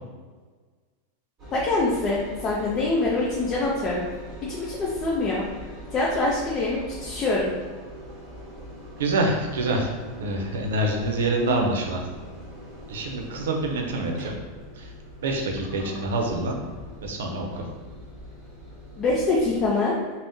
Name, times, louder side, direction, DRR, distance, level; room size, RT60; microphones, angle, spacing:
Engine, 1.4-19.7, equal, 25° right, 1.0 m, -42 dB
voice 1, 1.5-4.0 4.5-5.4 5.9-7.5 19.0-19.9, left 2 dB, 30° left, -5 dB, 0.5 m, -24 dB
voice 2, 9.0-12.0 12.9-14.4 14.8-14.9 15.2-16.5 17.0-17.6, right 2 dB, 85° right, 2 dB, 0.5 m, -26 dB
2.6 x 2.0 x 3.5 m, 1.4 s
supercardioid pair, 130°, 0 cm